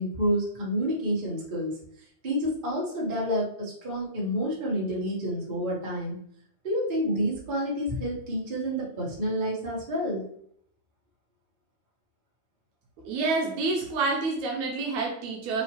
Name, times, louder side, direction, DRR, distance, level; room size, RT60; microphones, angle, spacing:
voice 1, 0.0-1.7 2.2-6.2 6.6-10.2, equal, 30° right, -6 dB, 0.9 m, -29 dB
voice 2, 13.1-15.6, right 3 dB, 75° right, 0 dB, 2.0 m, -28 dB
4.7 x 3.3 x 3.1 m, 0.66 s
omnidirectional pair, 3.7 m